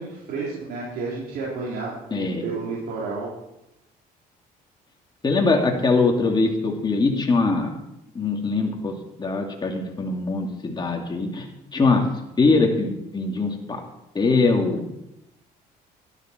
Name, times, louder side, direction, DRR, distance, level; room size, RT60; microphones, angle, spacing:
voice 1, 0.0-3.3, right 4 dB, 70° right, -6 dB, 4.0 m, -31 dB
voice 2, 2.1-2.4 5.2-7.7 8.1-8.9 9.2-11.5 11.7-12.1 12.4-13.8 14.1-14.8, left 3 dB, 25° left, 1 dB, 2.6 m, -22 dB
13.0 x 12.0 x 4.5 m, 0.86 s
cardioid pair, 110°, 17 cm